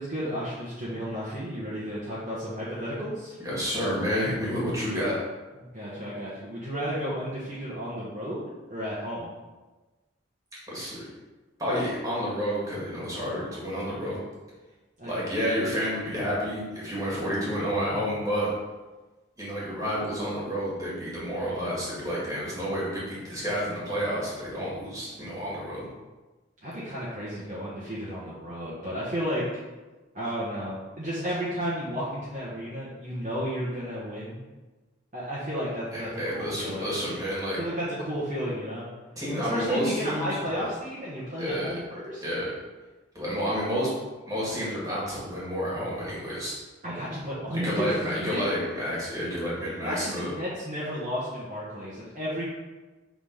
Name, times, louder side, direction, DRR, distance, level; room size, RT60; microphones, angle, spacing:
voice 1, 0.0-3.4 5.6-9.3 15.0-15.3 26.6-29.5 30.1-34.4 35.1-36.9 37.6-38.9 39.3-42.2 46.8-48.5 49.8-52.5, equal, 40° right, -8 dB, 1.2 m, -33 dB
voice 2, 3.4-5.2 10.7-11.1 11.6-14.2 15.0-18.5 19.4-25.9 35.9-37.6 39.2-40.7 41.4-41.8 42.2-42.5 43.1-43.9 44.3-46.5 47.5-50.3, equal, 15° right, -7 dB, 2.0 m, -30 dB
5.6 x 3.9 x 5.0 m, 1.2 s
head